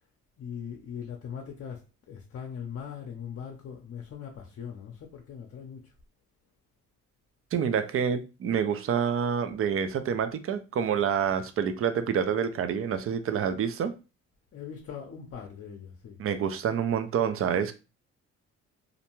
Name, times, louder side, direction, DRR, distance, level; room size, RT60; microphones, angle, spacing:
voice 1, 0.4-5.9 14.5-16.2, left 7 dB, 50° left, 0.6 m, -40 dB
voice 2, 7.5-13.9 16.2-17.7, right 7 dB, 50° right, 0.5 m, -27 dB
2.5 x 2.2 x 2.9 m
cardioid pair, 90°, 30 cm